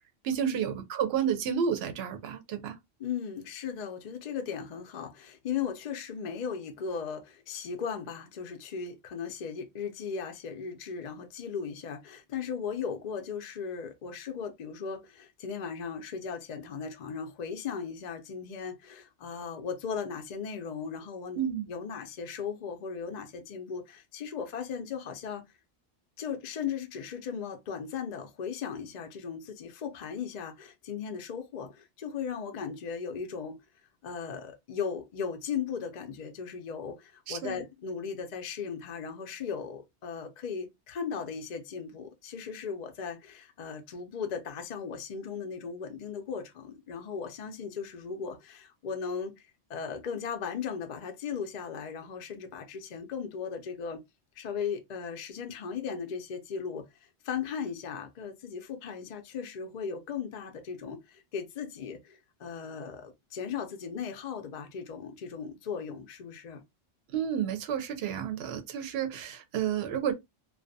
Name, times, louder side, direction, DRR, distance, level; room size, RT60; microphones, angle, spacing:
voice 1, 0.2-2.8 21.4-21.7 37.3-37.6 67.1-70.1, right 8 dB, 65° right, 0.8 m, -31 dB
voice 2, 3.0-21.4 21.7-25.4 26.2-33.6 34.0-54.0 54.4-66.6, left 6 dB, 55° left, 0.5 m, -37 dB
2.3 x 2.1 x 2.6 m
omnidirectional pair, 1.2 m